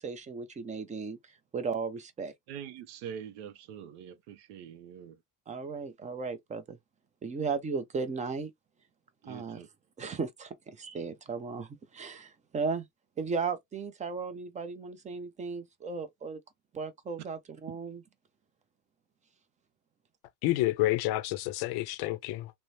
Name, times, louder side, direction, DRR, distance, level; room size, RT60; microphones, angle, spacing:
voice 1, 0.0-2.3 5.5-6.8 7.2-8.5 9.3-9.6 10.0-12.9 13.2-16.4 16.7-18.0, right 5 dB, 15° right, 0.4 m, -36 dB
voice 2, 2.5-5.2 9.2-9.7 17.7-17.8, right 8 dB, 65° right, 0.6 m, -44 dB
voice 3, 20.4-22.5, left 16 dB, 55° left, 0.5 m, -29 dB
3.0 x 2.0 x 2.6 m
supercardioid pair, 105°, 47 cm